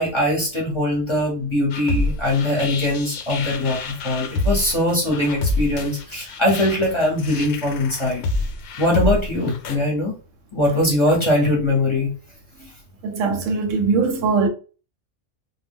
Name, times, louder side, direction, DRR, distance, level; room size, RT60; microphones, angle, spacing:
voice 1, 0.0-8.2 8.8-10.1 10.5-12.1, left 1 dB, 30° left, 0.7 m, -21 dB
sound 1, 1.7-9.8, left 2 dB, 90° left, 0.9 m, -27 dB
voice 2, 13.0-14.5, right 4 dB, 85° right, 0.9 m, -21 dB
2.1 x 2.1 x 3.4 m
omnidirectional pair, 1.3 m